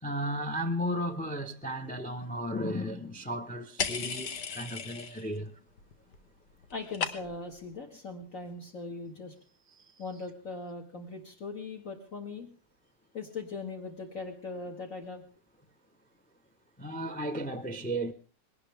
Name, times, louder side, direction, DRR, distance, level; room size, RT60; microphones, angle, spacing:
voice 1, 0.0-5.5 9.7-9.8 16.8-18.1, equal, 10° left, 0.6 m, -34 dB
sound 1, 3.8-5.4 5.7-6.2 6.5-7.5, left 6 dB, 70° left, 1.9 m, -36 dB
voice 2, 6.7-9.3 10.0-12.5 13.1-15.2, left 3 dB, 50° left, 2.2 m, -40 dB
21.0 x 18.0 x 3.5 m
omnidirectional pair, 1.9 m